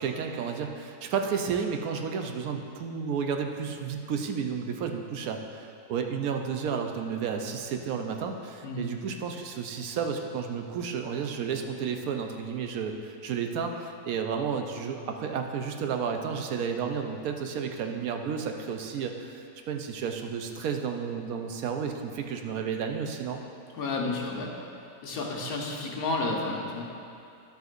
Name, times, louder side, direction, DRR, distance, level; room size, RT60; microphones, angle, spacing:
voice 1, 0.0-23.4, right 6 dB, 75° right, 4 dB, 1.1 m, -32 dB
voice 2, 23.7-24.5 25.0-26.8, left 2 dB, 80° left, -1 dB, 1.5 m, -31 dB
10.5 x 7.7 x 2.5 m, 2.6 s
omnidirectional pair, 1.5 m